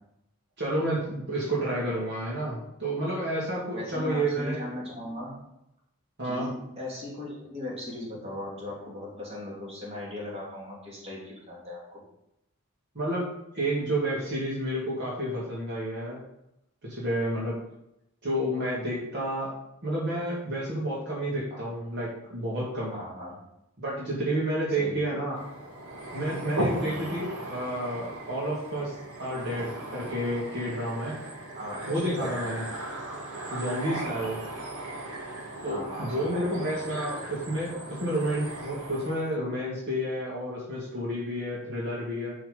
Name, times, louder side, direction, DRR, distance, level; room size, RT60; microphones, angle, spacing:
voice 1, 0.6-4.6 6.2-6.5 12.9-16.2 16.8-17.6 18.2-19.5 19.8-22.9 23.8-25.4 26.1-28.9 29.2-31.2 31.9-32.6 33.5-34.4 35.6-42.3, right 1 dB, 50° right, -6 dB, 2.3 m, -30 dB
voice 2, 3.7-5.4 6.2-12.0 21.5-21.7 22.9-23.4 24.8-25.0 26.6-27.0 31.5-32.3 33.9-34.1 35.6-36.7, left 1 dB, 30° right, -5 dB, 3.0 m, -38 dB
sound 1, 25.4-39.3, right 1 dB, 80° right, 1.9 m, -37 dB
10.5 x 4.7 x 5.3 m, 0.84 s
head